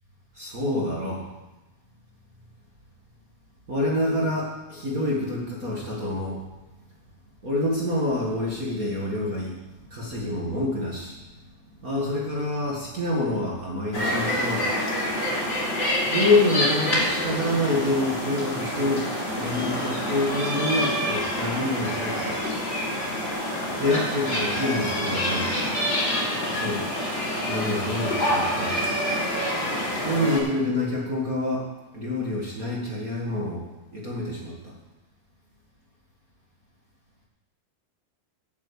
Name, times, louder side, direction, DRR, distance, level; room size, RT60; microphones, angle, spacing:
voice 1, 0.3-1.2 3.7-6.4 7.4-9.5 9.9-11.2 11.8-15.0 16.1-22.4 23.8-25.5 26.5-26.8 27.5-28.8 30.0-31.7 31.9-34.7, left 2 dB, 40° right, -4 dB, 1.2 m, -27 dB
sound 1, 13.9-30.4, equal, 30° left, 3.6 m, -27 dB
9.8 x 8.3 x 8.4 m, 1.1 s
omnidirectional pair, 4.6 m